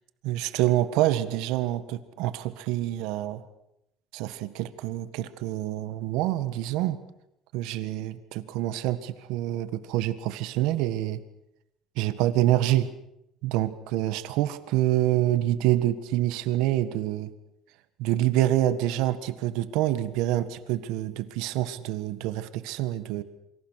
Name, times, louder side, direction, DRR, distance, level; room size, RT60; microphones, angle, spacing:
voice 1, 0.2-3.4 4.1-7.0 7.5-11.2 12.0-12.9 13.4-17.3 18.0-23.2, right 14 dB, 80° right, 12 dB, 1.6 m, -26 dB
27.5 x 25.0 x 6.5 m, 0.83 s
cardioid pair, 140°, 0 cm